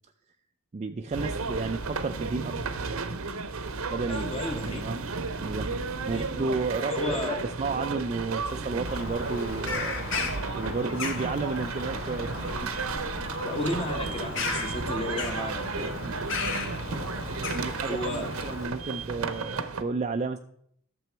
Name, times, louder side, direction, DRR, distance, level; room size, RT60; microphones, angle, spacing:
voice 1, 0.7-2.6 3.9-5.0 5.4-5.7 6.1-10.0 10.5-12.7 16.0-16.6 17.5-20.4, right 3 dB, 30° right, 6 dB, 0.4 m, -32 dB
sound 1, 1.1-19.8, right 4 dB, 80° right, 0.8 m, -34 dB
voice 2, 4.1-4.8 6.1-6.2 6.9-7.3 13.4-15.9 17.9-18.3, left 1 dB, 25° left, 2 dB, 1.2 m, -32 dB
Bird vocalization bird call bird song, 8.9-18.7, left 3 dB, 60° left, 1.6 m, -35 dB
12.5 x 6.9 x 4.5 m, 0.69 s
head